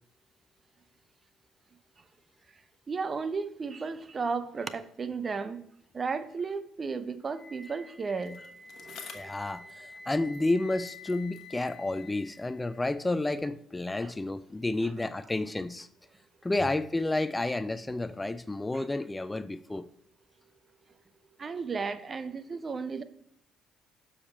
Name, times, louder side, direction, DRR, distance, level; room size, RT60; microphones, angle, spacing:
voice 1, 2.9-5.6 5.9-8.5 8.8-9.3 14.0-14.1 18.7-18.8 21.4-23.0, right 4 dB, 40° right, 0.6 m, -34 dB
Wind instrument woodwind instrument, 7.3-13.3, left 3 dB, 40° left, 1.6 m, -49 dB
Bicycle, 8.2-10.6 10.8-13.2 14.0-14.1, left 6 dB, 60° left, 1.1 m, -52 dB
voice 2, 9.1-15.9 16.4-19.9, left 2 dB, 15° left, 0.4 m, -31 dB
7.1 x 5.0 x 4.2 m
supercardioid pair, 60°, 0 cm